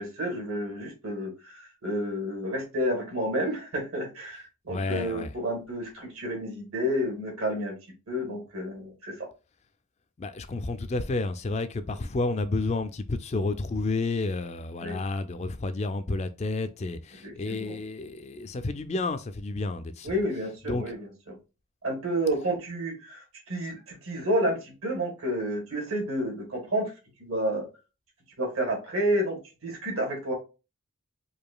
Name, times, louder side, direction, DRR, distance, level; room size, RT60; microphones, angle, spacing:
voice 1, 0.0-7.7 8.1-9.3 14.8-15.0 17.2-17.8 20.0-21.3 21.8-26.9 27.2-27.7 28.4-30.3, equal, 70° right, 2.1 m, -30 dB
voice 2, 4.7-5.3 10.2-20.1 20.7-20.8, left 3 dB, 30° left, 0.3 m, -30 dB
4.8 x 2.7 x 2.2 m
head